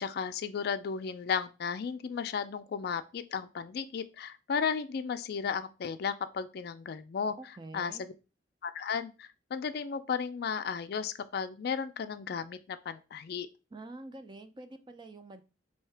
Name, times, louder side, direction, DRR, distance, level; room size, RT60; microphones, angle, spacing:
voice 1, 0.0-7.3 7.7-8.1 8.6-13.5, left 6 dB, 60° left, 10 dB, 0.4 m, -34 dB
voice 2, 7.4-8.0 13.7-15.4, right 2 dB, 25° right, 8 dB, 0.4 m, -46 dB
4.5 x 2.8 x 3.3 m, 0.30 s
head